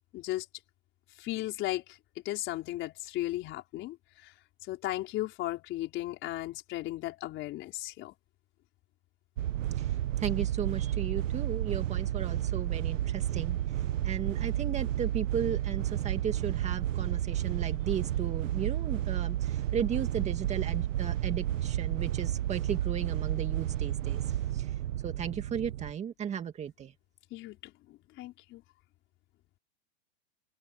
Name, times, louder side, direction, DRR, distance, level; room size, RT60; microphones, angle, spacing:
voice 1, 0.1-0.5 1.2-2.0 2.2-4.3 4.7-8.1 27.3-28.6, left 16 dB, 30° left, 4.3 m, -36 dB
sound 1, 9.4-25.9, right 12 dB, 70° right, 1.5 m, -31 dB
voice 2, 9.8-24.7 25.0-26.9, right 8 dB, 15° right, 2.1 m, -35 dB
open air
supercardioid pair, 150°, 39 cm